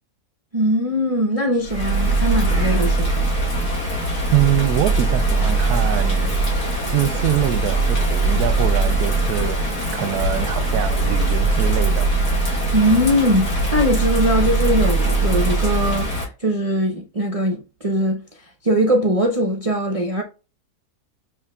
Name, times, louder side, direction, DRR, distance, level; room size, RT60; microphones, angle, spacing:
voice 1, 0.5-3.3 12.7-18.2 18.6-20.2, equal, 45° right, 0.4 m, -21 dB
Bird vocalization bird call bird song / Rain, 1.6-16.2, right 2 dB, 80° left, 2.4 m, -21 dB
voice 2, 4.3-6.3 6.9-12.1, right 12 dB, 90° right, 1.1 m, -24 dB
7.0 x 3.0 x 2.3 m
omnidirectional pair, 1.6 m